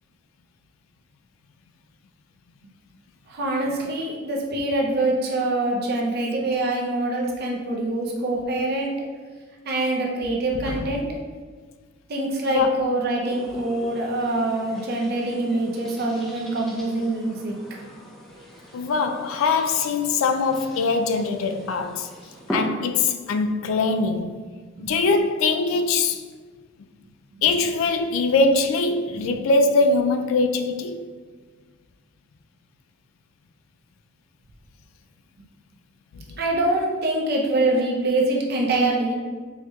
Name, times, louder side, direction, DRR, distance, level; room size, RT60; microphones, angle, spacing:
voice 1, 3.3-9.0 9.6-11.0 12.1-17.5 24.8-24.9 29.1-29.4 36.4-39.1, right 2 dB, 50° right, 0.6 m, -24 dB
voice 2, 10.6-11.0 12.5-12.9 18.7-22.1 22.5-24.4 24.8-26.2 27.4-31.1 36.1-36.4, left 3 dB, 80° left, 0.3 m, -22 dB
sound 1, 13.2-22.6, equal, ahead, 0.5 m, -40 dB
4.6 x 2.8 x 2.3 m
head